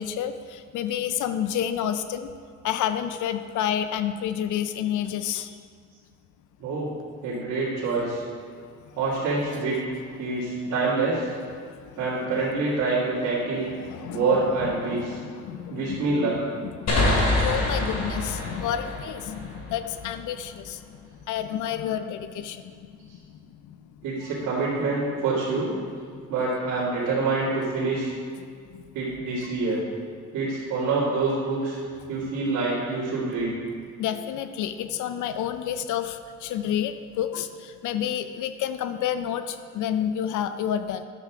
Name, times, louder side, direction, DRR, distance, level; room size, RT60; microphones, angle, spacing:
voice 1, 0.0-2.3 2.6-5.6 8.5-8.6 10.5-10.7 11.6-12.4 13.7-22.6 23.0-23.2 23.7-23.8 24.2-24.3 26.2-26.3 28.7-28.8 29.4-29.5 34.0-41.0, left 10 dB, 80° left, 10 dB, 0.5 m, -30 dB
voice 2, 6.6-6.9 7.2-8.2 9.0-9.7 10.2-11.3 12.0-13.7 14.1-15.2 15.7-16.4 24.0-25.7 26.3-28.1 28.9-29.8 30.3-31.8 32.1-33.6, right 3 dB, 85° right, -10 dB, 2.3 m, -26 dB
sound 1, 16.9-20.4, left 1 dB, 55° left, 2.5 m, -26 dB
10.5 x 7.5 x 3.6 m, 2.1 s
cardioid pair, 90°, 30 cm